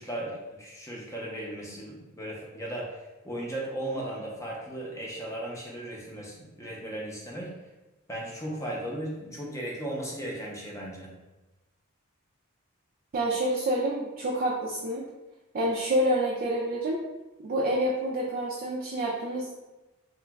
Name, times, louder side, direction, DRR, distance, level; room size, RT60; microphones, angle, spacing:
voice 1, 0.0-7.5 8.1-11.1, right 1 dB, 15° left, -3 dB, 0.6 m, -36 dB
voice 2, 13.1-15.0 15.5-17.0 17.4-19.5, right 1 dB, 40° right, -3 dB, 0.3 m, -28 dB
2.9 x 2.2 x 3.4 m, 1.1 s
head